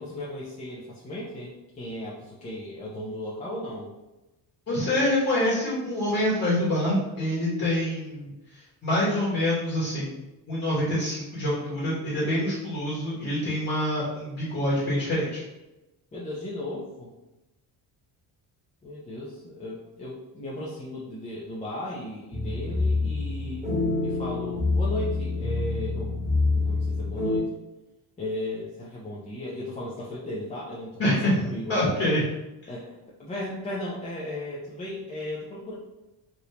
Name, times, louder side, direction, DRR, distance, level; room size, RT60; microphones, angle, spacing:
voice 1, 0.0-3.9 16.1-17.1 18.8-23.7 24.0-26.1 26.5-27.5 28.2-32.1 32.7-32.9 33.2-35.7, left 1 dB, 20° left, -7 dB, 0.6 m, -36 dB
voice 2, 4.7-8.3 8.8-10.2 10.5-15.4 31.0-32.2, left 1 dB, 35° left, -8 dB, 1.3 m, -26 dB
sound 1, 22.3-27.4, left 3 dB, 20° right, 1.3 m, -26 dB
3.4 x 2.6 x 2.8 m, 1.0 s
cardioid pair, 130°, 40 cm